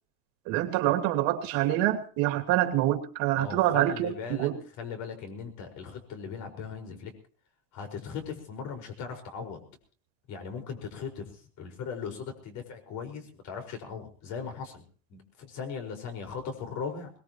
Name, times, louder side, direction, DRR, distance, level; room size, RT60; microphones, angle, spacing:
voice 1, 0.5-4.5, right 14 dB, 60° right, 4 dB, 2.7 m, -26 dB
voice 2, 3.4-4.5 4.8-7.1 7.7-9.7 10.3-14.8 15.1-17.1, left 6 dB, 50° left, 4 dB, 5.3 m, -38 dB
22.0 x 20.0 x 3.1 m, 0.40 s
supercardioid pair, 140°, 39 cm